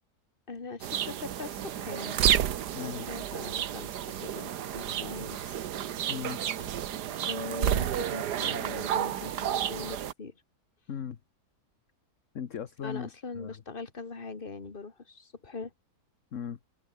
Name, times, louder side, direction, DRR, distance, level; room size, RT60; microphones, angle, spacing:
voice 1, 0.5-2.1 2.8-3.9 4.2-5.7 6.6-6.7 7.2-10.4 12.8-15.7, left 4 dB, 35° left, 2.1 m, -41 dB
sound 1, 0.8-10.1, right 10 dB, 85° right, 1.6 m, -31 dB
voice 2, 2.7-3.1 6.1-6.4 10.9-11.2 12.3-13.1 13.4-13.6 16.3-16.6, left 8 dB, 50° left, 1.4 m, -37 dB
omnidirectional pair, 1.7 m